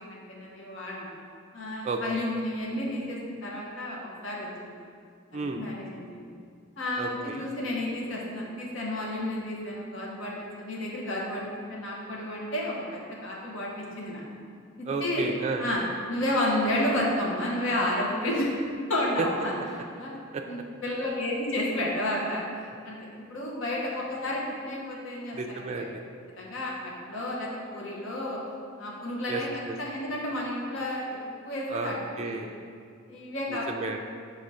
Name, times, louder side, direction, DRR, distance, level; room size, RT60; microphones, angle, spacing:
voice 1, 0.1-1.1 1.5-4.8 5.3-6.3 6.8-14.2 14.8-15.2 15.6-15.8 16.1-18.5 18.9-20.1 20.4-25.9 26.4-28.4 28.8-29.5 29.8-31.2 31.4-32.0 32.3-32.4 33.1-33.6, left 1 dB, 70° left, -4 dB, 0.9 m, -31 dB
voice 2, 1.8-2.2 5.3-5.6 7.0-7.4 14.8-15.6 20.3-20.4 25.3-25.9 29.3-29.7 31.7-32.5 33.5-34.0, right 3 dB, 35° right, 2 dB, 0.3 m, -32 dB
4.9 x 3.6 x 5.5 m, 2.2 s
head